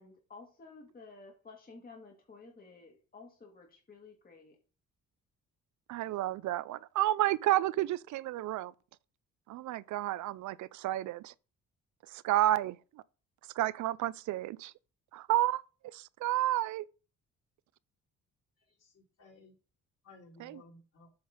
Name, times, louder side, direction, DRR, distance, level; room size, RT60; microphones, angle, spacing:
voice 1, 0.0-4.6, left 4 dB, 30° left, 1.9 m, -53 dB
voice 2, 5.9-8.7 9.5-11.3 12.1-13.0 13.5-14.7 15.1-16.9 20.4-20.6, right 14 dB, 75° right, 0.5 m, -31 dB
voice 3, 18.6-19.6 20.0-21.1, left 2 dB, 55° left, 4.1 m, -57 dB
7.9 x 3.9 x 5.1 m
cardioid pair, 90°, 30 cm